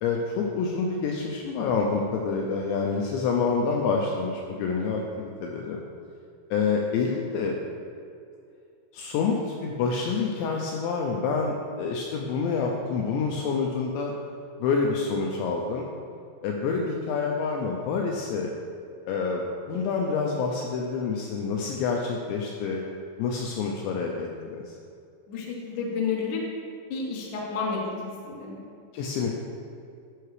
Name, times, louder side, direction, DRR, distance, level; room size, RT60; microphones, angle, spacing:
voice 1, 0.0-5.8 6.5-7.6 8.9-14.1 14.6-15.9 16.4-18.5 19.1-22.8 23.2-24.8 28.9-29.4, left 5 dB, 85° left, 0 dB, 2.6 m, -27 dB
voice 2, 25.3-26.4 26.9-28.6, left 5 dB, 70° left, -3 dB, 1.9 m, -31 dB
12.5 x 5.7 x 3.3 m, 2.4 s
omnidirectional pair, 5.5 m